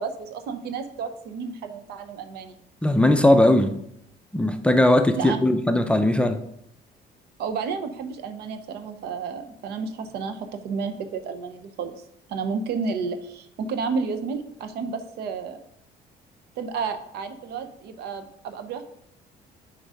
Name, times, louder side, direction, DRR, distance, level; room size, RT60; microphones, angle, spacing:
voice 1, 0.0-2.6 5.2-5.4 7.4-12.0 12.3-15.6 16.6-18.8, right 5 dB, 75° right, 0.7 m, -31 dB
voice 2, 2.8-3.7 4.3-6.4, left 1 dB, 5° left, 0.5 m, -19 dB
4.7 x 3.9 x 5.5 m
cardioid pair, 110°, 17 cm